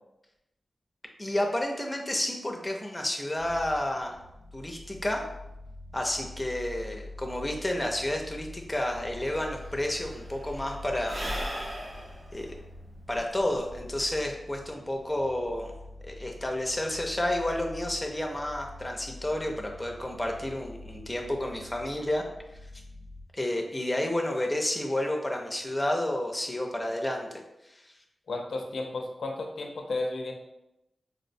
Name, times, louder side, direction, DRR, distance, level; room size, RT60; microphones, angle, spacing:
voice 1, 1.2-4.2 4.5-5.2 5.9-11.2 12.3-12.5 13.1-15.7 16.0-22.2 23.3-27.3 27.7-27.8, left 1 dB, 15° left, 1 dB, 0.5 m, -30 dB
sound 1, 3.4-23.2, left 2 dB, 85° right, 1.0 m, -46 dB
Sigh / Breathing, 9.0-9.1 9.3-14.0, equal, 40° right, 0.6 m, -38 dB
voice 2, 28.3-30.3, left 2 dB, 80° left, 2 dB, 0.4 m, -33 dB
4.2 x 2.1 x 2.6 m, 0.90 s
wide cardioid pair, 90°, 0 cm